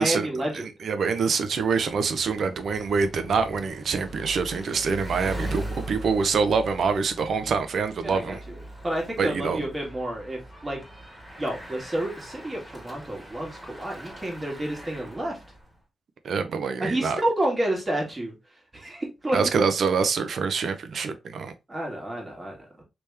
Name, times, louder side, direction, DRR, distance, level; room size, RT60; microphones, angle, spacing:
voice 1, 0.0-0.7 8.0-8.6 8.8-10.8 11.4-15.4 16.8-18.3 18.7-19.6 21.7-22.8, right 1 dB, 25° right, 1.7 m, -30 dB
voice 2, 0.5-8.4 9.2-9.6 16.2-17.2 19.3-21.5, right 5 dB, 70° right, 0.6 m, -25 dB
Bicycle, 1.3-15.7, right 1 dB, 10° right, 1.9 m, -40 dB
3.3 x 3.0 x 3.3 m
cardioid pair, 75°, 0 cm